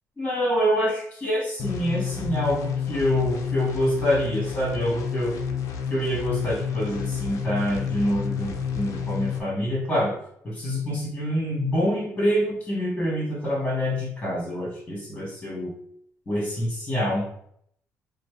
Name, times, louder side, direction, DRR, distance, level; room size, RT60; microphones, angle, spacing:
voice 1, 0.2-5.3 5.9-10.1 10.4-15.7 16.2-17.3, equal, 15° left, -5 dB, 1.6 m, -26 dB
sound 1, 1.6-9.4, left 7 dB, 70° left, 0.6 m, -30 dB
5.5 x 2.0 x 3.3 m, 0.68 s
cardioid pair, 160°, 6 cm